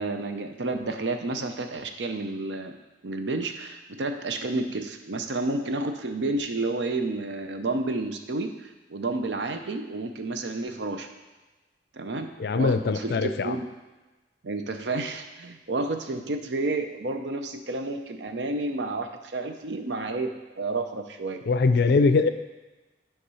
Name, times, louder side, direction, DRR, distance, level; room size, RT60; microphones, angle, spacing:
voice 1, 0.0-2.7 3.0-11.1 11.9-13.7 14.4-21.4, right 2 dB, 80° right, 6 dB, 0.6 m, -30 dB
voice 2, 12.4-13.5 21.5-22.3, left 4 dB, 65° left, 10 dB, 0.4 m, -22 dB
8.5 x 3.6 x 5.5 m, 1.1 s
head